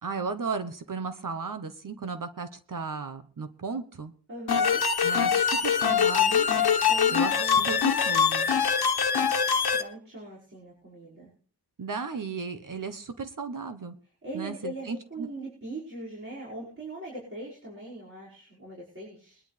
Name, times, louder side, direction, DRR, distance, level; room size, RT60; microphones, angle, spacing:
voice 1, 0.0-4.1 5.0-6.5 7.1-8.5 11.8-13.9 14.3-15.3, right 4 dB, 55° right, 9 dB, 1.1 m, -35 dB
voice 2, 4.3-4.8 6.8-7.8 9.7-11.3 14.2-19.4, right 1 dB, 35° right, -8 dB, 5.6 m, -41 dB
sound 1, 4.5-9.8, left 7 dB, 70° left, 1.4 m, -23 dB
22.0 x 11.0 x 3.4 m, 0.43 s
wide cardioid pair, 130°, 39 cm